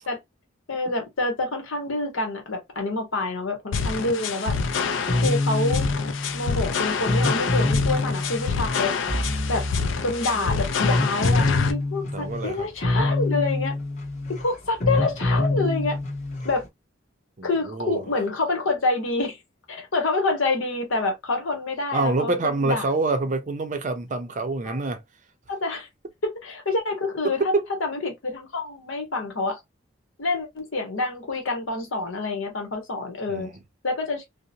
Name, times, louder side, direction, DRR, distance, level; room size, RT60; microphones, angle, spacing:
voice 1, 0.7-4.6 5.2-5.9 6.3-8.9 9.5-9.6 10.0-13.7 14.3-16.0 16.4-16.6 17.4-19.4 19.7-22.8 24.6-24.8 25.5-25.9 26.2-27.5 27.8-29.6 30.2-33.5 33.8-34.2, left 3 dB, 90° left, 1.0 m, -27 dB
sound 1, 3.7-11.7, left 5 dB, 70° left, 0.4 m, -27 dB
sound 2, 4.5-16.7, left 2 dB, 35° left, 0.9 m, -26 dB
voice 2, 12.1-12.7 17.4-18.0 21.9-25.0 27.2-27.6 33.3-33.6, right 3 dB, 40° right, 0.5 m, -26 dB
2.7 x 2.0 x 2.5 m
head